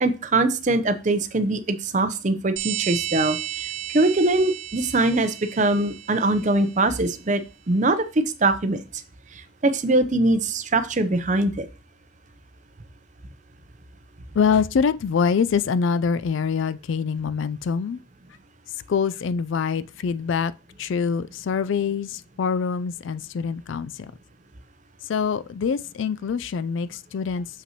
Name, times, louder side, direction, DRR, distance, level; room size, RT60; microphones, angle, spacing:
voice 1, 0.0-3.7 3.9-9.0 9.3-11.7, right 2 dB, 35° right, 0.6 m, -22 dB
sound 1, 2.6-6.8, right 12 dB, 75° right, 0.7 m, -33 dB
voice 2, 14.3-18.0 18.9-20.5 20.8-24.1 25.0-27.5, left 6 dB, 65° left, 0.3 m, -24 dB
6.9 x 5.5 x 2.9 m
head